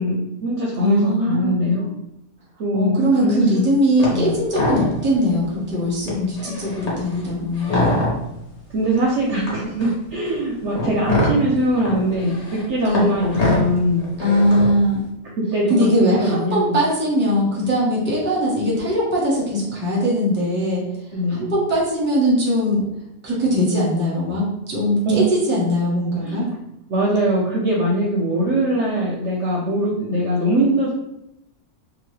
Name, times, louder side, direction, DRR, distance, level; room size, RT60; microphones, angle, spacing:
voice 1, 0.0-1.9 2.6-3.6 4.1-4.4 8.7-14.1 15.4-16.7 21.1-21.5 25.1-25.2 26.2-26.5 26.9-30.9, right 1 dB, 65° right, -3 dB, 0.7 m, -21 dB
voice 2, 0.8-1.6 2.7-8.0 12.8-13.2 14.2-15.0 15.7-20.8 21.3-22.8 23.2-26.5, equal, 10° right, -6 dB, 0.7 m, -20 dB
sound 1, 4.0-4.2 4.5-5.2 5.6-5.7 6.0-8.4 9.1-14.9, left 1 dB, 35° left, 0.6 m, -24 dB
2.9 x 2.3 x 3.2 m, 0.85 s
omnidirectional pair, 1.6 m